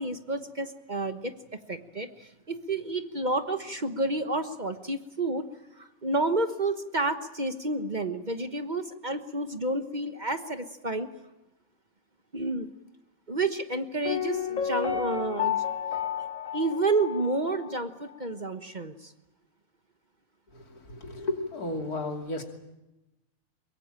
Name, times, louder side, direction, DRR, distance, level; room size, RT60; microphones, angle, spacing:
voice 1, 0.0-1.3 1.7-5.4 5.8-11.1 12.3-12.7 13.3-15.6 16.5-19.1, right 2 dB, 35° right, 9 dB, 1.3 m, -30 dB
Piano, 14.1-17.8 18.1-18.2, left 8 dB, 60° left, 1.9 m, -31 dB
voice 2, 20.8-22.4, left 2 dB, 85° left, 4 dB, 3.4 m, -33 dB
23.0 x 22.5 x 8.9 m, 0.97 s
omnidirectional pair, 1.6 m